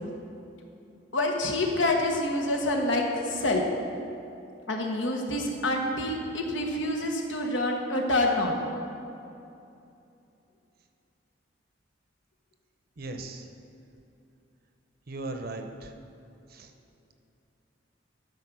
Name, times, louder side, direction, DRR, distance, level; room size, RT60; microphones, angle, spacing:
voice 1, 1.1-3.6 4.7-8.6, left 1 dB, 80° left, 1 dB, 1.3 m, -27 dB
voice 2, 13.0-13.5 15.1-15.9 16.5-16.7, right 2 dB, 55° right, 6 dB, 0.8 m, -37 dB
12.5 x 5.2 x 6.2 m, 2.7 s
head